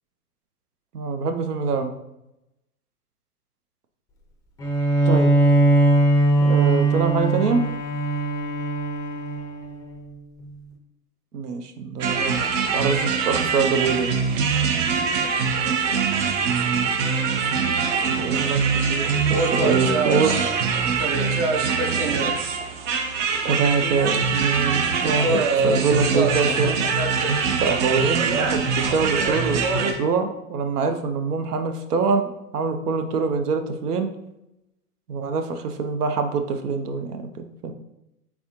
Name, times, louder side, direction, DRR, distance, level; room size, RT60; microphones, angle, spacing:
voice 1, 0.9-1.9 5.1-5.3 6.4-7.6 11.3-12.4 12.7-14.1 18.1-20.6 23.4-26.8 27.6-34.2 35.1-37.3 37.6-37.7, right 5 dB, 85° right, 6 dB, 0.7 m, -24 dB
Bowed string instrument, 4.6-10.1, right 2 dB, 10° left, 0.4 m, -20 dB
sound 1, 12.0-29.9, right 5 dB, 55° right, 0.8 m, -23 dB
4.2 x 3.4 x 2.9 m, 0.87 s
hypercardioid pair, 110°, 45 cm